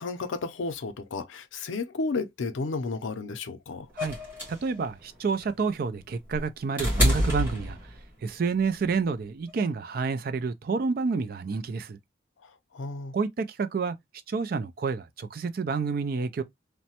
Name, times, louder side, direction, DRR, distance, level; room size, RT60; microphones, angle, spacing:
voice 1, 0.0-3.9 12.4-13.1, left 3 dB, 85° left, 0.5 m, -33 dB
sound 1, 4.0-8.2 9.5-9.6, equal, 10° right, 1.5 m, -28 dB
voice 2, 4.5-7.8 8.2-12.0 13.1-14.0 14.3-16.4, right 4 dB, 50° right, 0.4 m, -29 dB
3.1 x 2.1 x 2.8 m
head